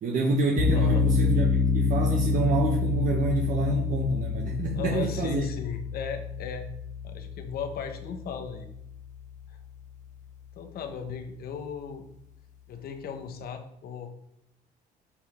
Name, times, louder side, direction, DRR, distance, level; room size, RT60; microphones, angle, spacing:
voice 1, 0.0-5.5, right 2 dB, 50° right, 0 dB, 1.1 m, -27 dB
sound 1, 0.6-9.4, left 4 dB, 45° left, 1.2 m, -28 dB
voice 2, 0.7-1.0 4.8-6.7 7.0-8.7 9.5-9.6 10.5-12.1 12.7-14.1, left 6 dB, 65° left, 7 dB, 1.2 m, -36 dB
8.4 x 5.2 x 3.6 m, 0.77 s
cardioid pair, 110°, 17 cm